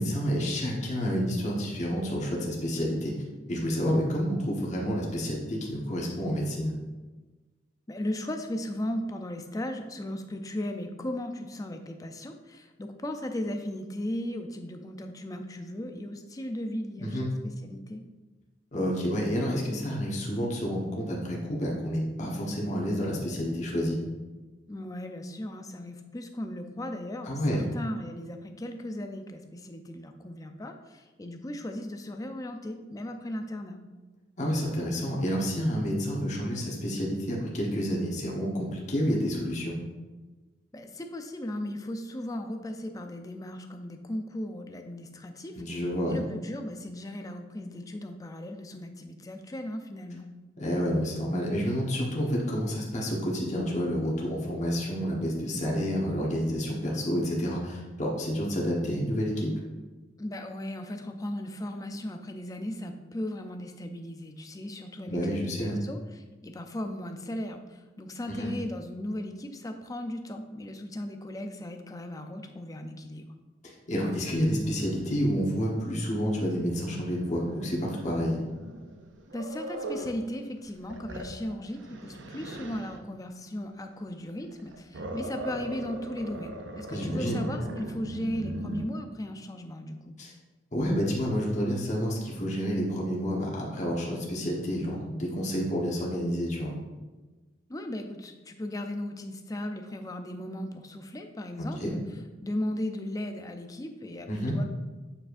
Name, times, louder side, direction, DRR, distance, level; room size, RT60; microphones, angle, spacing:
voice 1, 0.0-3.1 3.4-6.7 17.0-17.3 18.7-24.0 27.3-27.6 34.4-39.7 45.6-46.2 50.6-59.5 65.1-65.8 68.4-68.5 73.9-78.4 86.9-87.4 90.2-90.3 90.7-96.7 101.6-101.9 104.3-104.6, equal, 40° left, -4 dB, 1.2 m, -29 dB
voice 2, 7.9-18.0 24.7-33.8 40.7-50.3 60.2-73.3 79.3-90.2 97.7-102.0 102.4-104.6, left 1 dB, 20° left, 5 dB, 0.5 m, -37 dB
Growling, 74.4-80.2 80.7-83.0 84.4-88.9, right 1 dB, 80° right, 0.7 m, -40 dB
8.5 x 4.9 x 2.6 m, 1.2 s
head